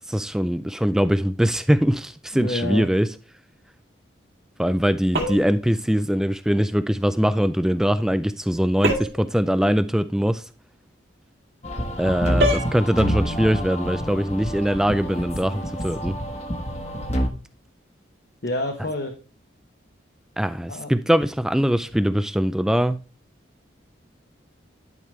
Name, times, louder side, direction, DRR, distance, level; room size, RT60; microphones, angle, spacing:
voice 1, 0.1-3.1 4.6-10.4 12.0-16.1 20.4-23.0, equal, 5° right, 0.3 m, -22 dB
voice 2, 2.3-2.9 18.4-19.1 20.7-20.9, left 1 dB, 55° left, 0.9 m, -28 dB
sound 1, 5.1-5.6 8.8-9.3 12.4-12.7, right 1 dB, 60° right, 2.1 m, -24 dB
sound 2, 11.6-17.3, equal, 35° left, 1.2 m, -27 dB
11.0 x 5.1 x 3.2 m
head